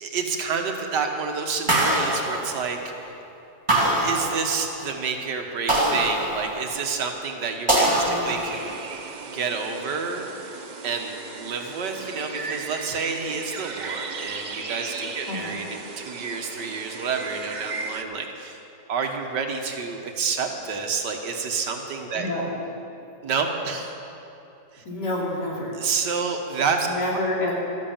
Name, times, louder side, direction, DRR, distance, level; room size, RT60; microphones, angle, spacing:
voice 1, 0.0-3.1 3.8-8.7 9.3-10.3 10.8-18.6 18.9-22.3 23.2-23.9 24.7-24.8 25.7-26.9 27.1-27.2, right 5 dB, 80° right, 4 dB, 1.9 m, -29 dB
sound 1, 1.7-3.0 3.7-4.9 5.7-6.9 7.7-8.9, right 1 dB, 15° right, 2.8 m, -23 dB
sound 2, 8.2-18.0, right 4 dB, 50° right, 0.5 m, -36 dB
voice 2, 15.3-15.6 22.1-22.5 24.9-25.7 26.8-27.5, left 2 dB, 75° left, -4 dB, 3.4 m, -28 dB
13.0 x 11.0 x 7.2 m, 2.8 s
omnidirectional pair, 1.8 m